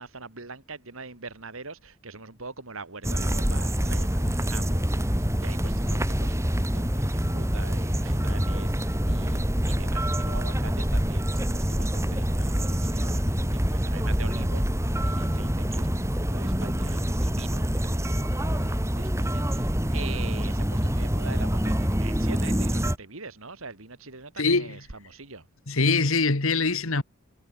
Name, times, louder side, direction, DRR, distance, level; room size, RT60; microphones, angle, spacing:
voice 1, 0.0-14.7 15.0-16.1 16.3-25.5, right 4 dB, 70° right, 2.7 m, -43 dB
sound 1, 3.0-23.0, equal, 15° right, 3.1 m, -26 dB
voice 2, 24.4-24.8 25.7-27.0, left 3 dB, 75° left, 1.8 m, -23 dB
head